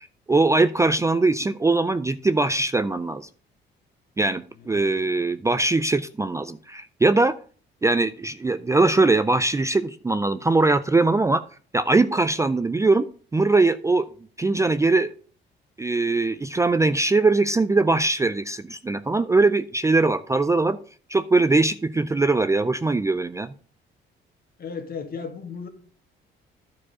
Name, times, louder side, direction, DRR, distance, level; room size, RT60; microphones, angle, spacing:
voice 1, 0.0-3.3 4.2-7.4 7.8-11.4 11.7-13.0 13.3-14.1 14.4-15.1 15.8-20.8 21.1-23.5, right 3 dB, 15° right, 12 dB, 0.4 m, -21 dB
voice 2, 4.6-5.0 24.6-25.7, left 5 dB, 50° left, 5 dB, 1.8 m, -35 dB
11.0 x 4.8 x 4.9 m, 0.43 s
cardioid pair, 90°, 20 cm